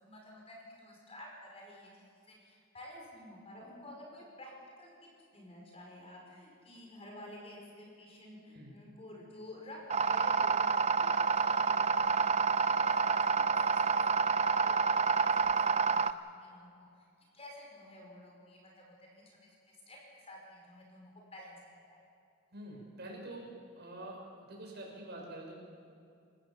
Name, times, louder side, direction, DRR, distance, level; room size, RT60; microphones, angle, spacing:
voice 1, 0.0-4.5 4.8-17.1 17.3-22.0, left 1 dB, 30° left, -1 dB, 5.2 m, -51 dB
sound 1, 9.9-16.1, right 5 dB, 30° right, 0.5 m, -28 dB
voice 2, 22.5-23.5 23.8-25.5, right 1 dB, 50° right, -1 dB, 6.2 m, -46 dB
28.5 x 15.5 x 7.3 m, 2.6 s
head